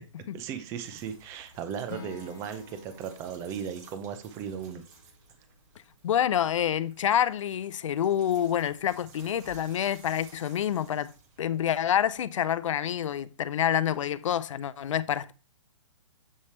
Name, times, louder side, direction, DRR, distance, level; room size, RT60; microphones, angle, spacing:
voice 1, 0.3-4.8, right 8 dB, 15° right, 0.5 m, -36 dB
sound 1, 0.8-12.2, right 4 dB, 35° right, 1.0 m, -55 dB
Acoustic guitar / Strum, 1.9-5.9, left 7 dB, 35° left, 1.1 m, -50 dB
voice 2, 6.0-11.1 11.4-15.3, left 10 dB, 70° left, 0.5 m, -27 dB
7.3 x 3.2 x 4.2 m
hypercardioid pair, 160°, 16 cm